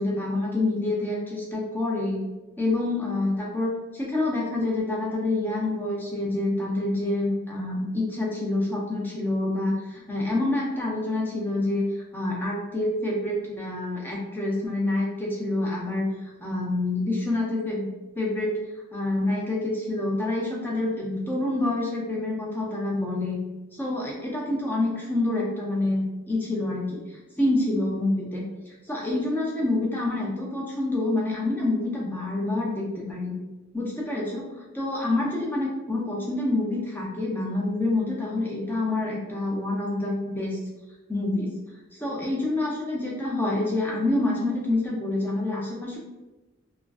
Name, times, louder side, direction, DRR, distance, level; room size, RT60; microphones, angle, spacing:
voice 1, 0.0-2.2 2.6-11.9 12.1-16.1 16.4-17.9 18.2-18.5 18.9-23.4 23.7-27.0 27.4-28.4 28.9-33.3 33.7-40.6 41.1-41.5 42.0-46.0, left 2 dB, 10° left, -3 dB, 0.4 m, -27 dB
2.4 x 2.2 x 2.2 m, 1.1 s
head